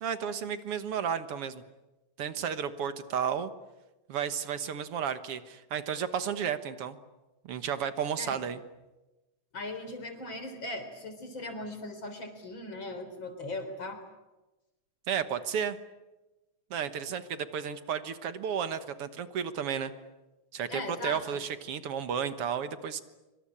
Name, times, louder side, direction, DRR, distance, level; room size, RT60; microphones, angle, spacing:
voice 1, 0.0-1.6 2.2-3.5 4.1-7.0 7.4-8.6 15.1-15.8 16.7-19.9 20.5-23.0, right 8 dB, 55° right, 11 dB, 2.0 m, -33 dB
voice 2, 9.5-14.0 20.7-21.4, left 2 dB, 40° left, 8 dB, 4.5 m, -39 dB
26.0 x 25.0 x 8.6 m, 1.1 s
omnidirectional pair, 3.4 m